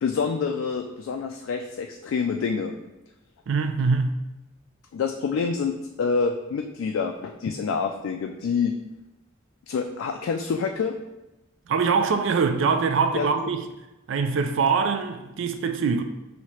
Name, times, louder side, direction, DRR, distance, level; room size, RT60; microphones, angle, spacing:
voice 1, 0.0-2.7 4.9-5.7 6.0-8.7 9.7-10.9 13.1-13.3, left 5 dB, 85° left, 0.3 m, -27 dB
voice 2, 3.5-4.2 11.7-13.6 14.1-16.0, right 5 dB, 65° right, 0.4 m, -23 dB
5.6 x 2.8 x 3.1 m
head